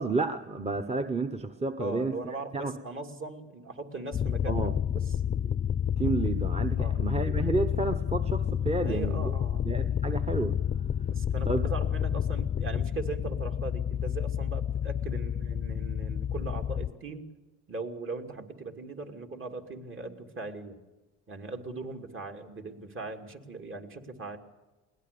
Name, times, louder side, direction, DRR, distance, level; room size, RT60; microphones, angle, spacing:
voice 1, 0.0-2.7 4.5-4.7 6.0-9.3 9.6-10.6 11.4-11.7, right 3 dB, 20° right, 6 dB, 1.1 m, -31 dB
voice 2, 1.8-5.0 6.8-7.0 8.8-9.7 11.0-17.3 17.7-20.8 21.3-24.4, right 3 dB, 45° right, 3 dB, 2.7 m, -39 dB
sound 1, 4.1-16.9, left 9 dB, 35° left, 0.6 m, -29 dB
21.5 x 18.5 x 6.9 m, 1.2 s
cardioid pair, 90°, 30 cm